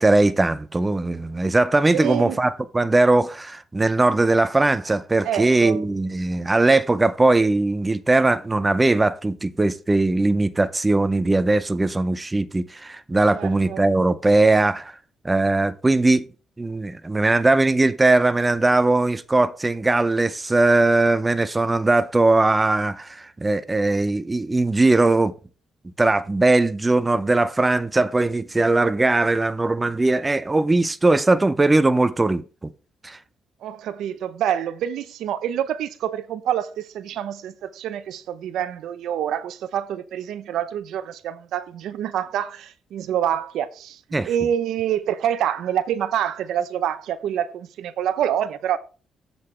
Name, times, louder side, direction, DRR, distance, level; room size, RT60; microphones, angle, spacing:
voice 1, 0.0-14.9 15.2-16.2 16.6-25.3 26.0-32.4 33.0-33.2 44.1-44.3, right 2 dB, 20° right, 0.7 m, -20 dB
voice 2, 1.9-2.4 5.2-5.8 13.3-13.8 33.6-44.0 44.3-48.8, right 10 dB, 80° right, 0.7 m, -26 dB
8.0 x 7.7 x 3.3 m
cardioid pair, 90°, 0 cm